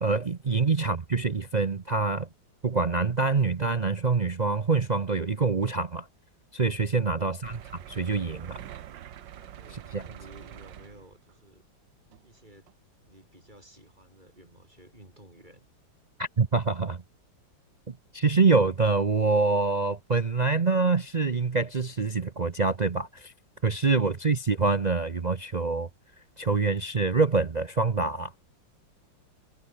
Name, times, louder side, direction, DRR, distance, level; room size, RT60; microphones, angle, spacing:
voice 1, 0.0-2.3 2.6-6.1 6.5-7.6 7.9-8.6 9.9-10.0 16.2-17.0 17.9-23.3 23.6-25.9 26.4-28.3, right 4 dB, 50° right, 0.5 m, -25 dB
sound 1, 7.4-11.3 12.1-12.3 12.7-12.8, right 11 dB, 75° right, 1.7 m, -45 dB
voice 2, 9.3-11.6 12.2-12.7 13.1-15.7, right 1 dB, 20° right, 6.1 m, -53 dB
omnidirectional pair, 2.1 m